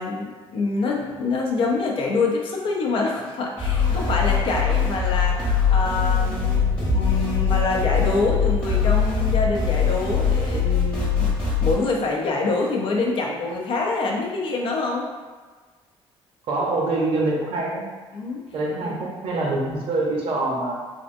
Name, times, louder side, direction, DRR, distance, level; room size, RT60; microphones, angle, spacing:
voice 1, 0.0-11.3 11.6-15.1 18.1-18.4 18.8-19.1, left 3 dB, 60° left, -1 dB, 0.5 m, -26 dB
sound 1, 3.6-11.7, left 6 dB, 10° left, 0.9 m, -22 dB
voice 2, 16.5-17.8 18.5-20.7, right 2 dB, 65° right, -2 dB, 0.7 m, -25 dB
3.3 x 2.5 x 2.5 m, 1.5 s
cardioid pair, 135°, 10 cm